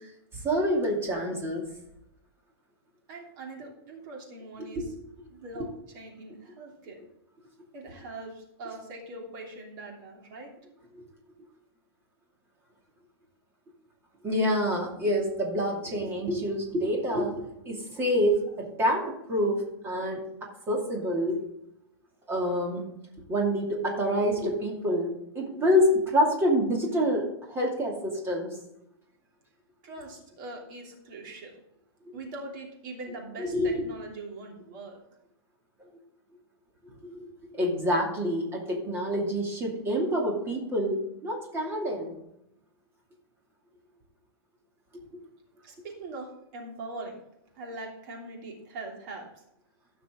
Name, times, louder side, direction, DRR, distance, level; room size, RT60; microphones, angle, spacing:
voice 1, 0.3-1.7 4.6-4.9 10.9-11.0 14.2-21.4 22.3-22.9 23.3-28.6 32.1-32.2 33.4-33.9 37.0-37.2 37.5-42.2, equal, 15° right, -1 dB, 2.6 m, -27 dB
voice 2, 3.1-4.8 5.3-5.7 5.9-7.0 7.7-10.5 29.8-31.6 32.1-35.0 45.6-47.2 47.5-49.3, right 2 dB, 45° right, 0 dB, 3.1 m, -42 dB
15.5 x 5.9 x 3.7 m, 0.79 s
hypercardioid pair, 155°, 14 cm